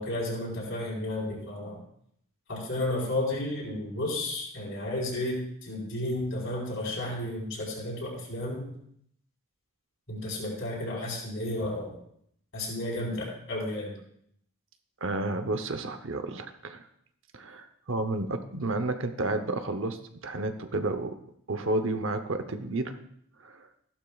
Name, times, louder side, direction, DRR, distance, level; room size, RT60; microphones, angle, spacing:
voice 1, 0.0-1.8 2.5-8.7 10.1-12.0 12.5-13.9, left 1 dB, 55° left, -3 dB, 4.4 m, -32 dB
voice 2, 15.0-16.8 17.3-21.2 21.5-22.9 23.4-23.7, right 2 dB, 55° right, 9 dB, 0.8 m, -31 dB
15.5 x 12.0 x 2.4 m, 0.70 s
head